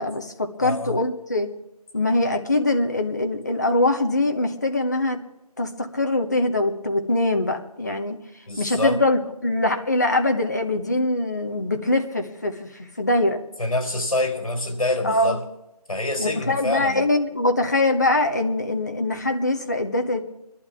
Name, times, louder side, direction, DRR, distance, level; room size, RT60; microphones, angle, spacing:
voice 1, 0.0-1.5 1.9-5.2 5.6-8.2 8.6-13.4 15.0-15.4 16.2-20.2, left 2 dB, 25° left, 3 dB, 1.0 m, -23 dB
voice 2, 0.6-0.9 8.5-9.0 13.6-15.4 15.9-17.1, left 2 dB, 55° left, 3 dB, 4.3 m, -26 dB
24.5 x 11.5 x 3.6 m, 0.90 s
figure-of-eight pair, 175°, 20 cm